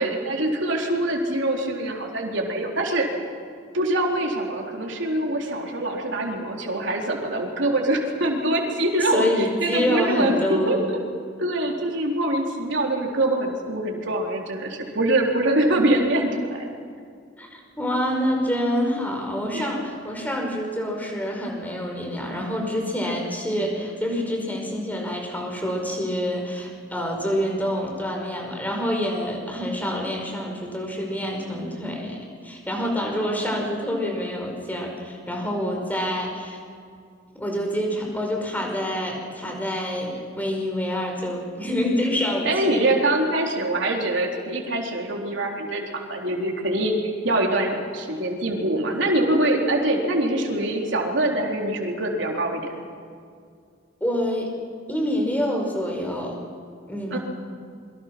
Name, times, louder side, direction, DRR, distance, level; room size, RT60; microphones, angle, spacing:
voice 1, 0.0-3.1 3.7-11.0 11.4-16.7 19.5-19.7 42.4-47.0 47.2-52.7 57.1-57.2, right 1 dB, 65° right, 1 dB, 3.9 m, -24 dB
voice 2, 9.1-10.8 17.4-36.6 37.3-42.9 54.0-54.5 54.9-56.4 56.9-57.2, equal, 10° left, 1 dB, 5.2 m, -27 dB
27.5 x 24.0 x 6.1 m, 2.3 s
head